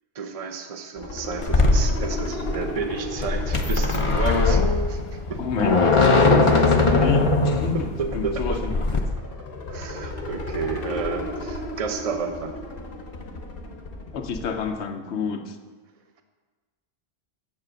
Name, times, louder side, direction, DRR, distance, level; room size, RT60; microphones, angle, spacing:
voice 1, 0.1-4.6 4.9-5.4 7.7-8.6 9.7-12.6, right 5 dB, 35° right, 6 dB, 0.8 m, -31 dB
sound 1, 1.0-14.8, left 1 dB, 60° left, 1.3 m, -35 dB
sound 2, 1.4-9.0, left 3 dB, 30° left, 0.8 m, -20 dB
voice 2, 5.4-7.9 8.1-8.8 14.1-15.6, left 5 dB, 85° left, 6 dB, 1.1 m, -29 dB
8.2 x 7.3 x 6.3 m, 1.4 s
omnidirectional pair, 1.1 m